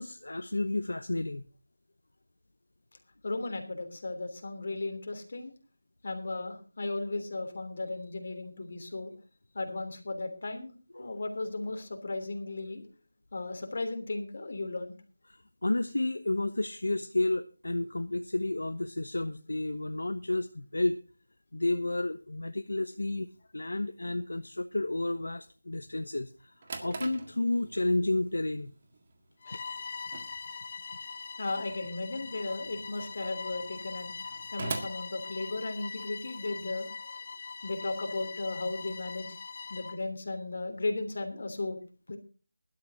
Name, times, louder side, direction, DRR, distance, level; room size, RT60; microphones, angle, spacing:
voice 1, 0.0-1.4 10.9-11.2 15.3-21.0 21.5-26.5 26.8-28.7, left 2 dB, 70° left, 10 dB, 0.9 m, -31 dB
voice 2, 3.2-5.5 6.0-9.1 9.5-10.7 11.0-12.8 13.3-14.9 31.4-34.1 34.5-36.9 37.6-39.3 39.7-41.8 42.1-42.2, left 2 dB, 50° left, 5 dB, 3.2 m, -35 dB
Drawer open or close, 26.3-36.0, right 3 dB, 35° right, 1.8 m, -45 dB
Bowed string instrument, 29.4-40.0, left 4 dB, 35° left, 1.2 m, -42 dB
20.0 x 12.0 x 2.8 m, 0.35 s
figure-of-eight pair, 165°, 0 cm